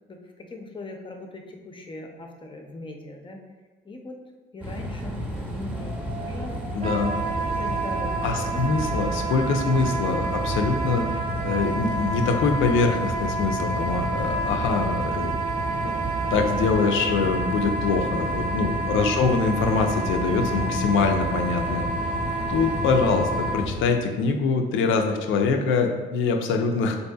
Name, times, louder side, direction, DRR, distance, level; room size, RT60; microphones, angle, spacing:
voice 1, 0.1-3.4 3.8-4.2 4.5-7.1 7.5-8.1 8.4-8.6, left 2 dB, 25° left, 2 dB, 0.5 m, -40 dB
sound 1, 4.6-23.8, equal, 10° right, 0.7 m, -31 dB
sound 2, 5.7-13.0, right 2 dB, 90° right, 0.9 m, -45 dB
voice 2, 6.7-7.1 8.2-15.3 15.8-15.9 16.3-21.9 22.5-27.0, left 4 dB, 80° left, 4 dB, 0.4 m, -24 dB
Wind instrument woodwind instrument, 6.8-23.6, right 2 dB, 50° right, 0.7 m, -30 dB
4.0 x 2.6 x 2.2 m, 1.3 s
cardioid pair, 90°, 20 cm